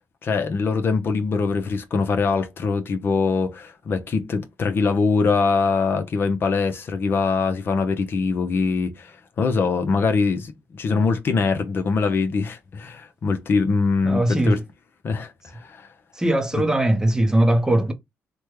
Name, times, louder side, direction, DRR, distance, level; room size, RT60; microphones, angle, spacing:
voice 1, 0.2-14.6 15.0-15.9 16.6-16.7, left 4 dB, 50° left, 0.7 m, -23 dB
voice 2, 14.0-14.6 16.1-17.9, right 1 dB, 15° right, 0.6 m, -20 dB
3.3 x 2.2 x 3.1 m
cardioid pair, 80°, 5 cm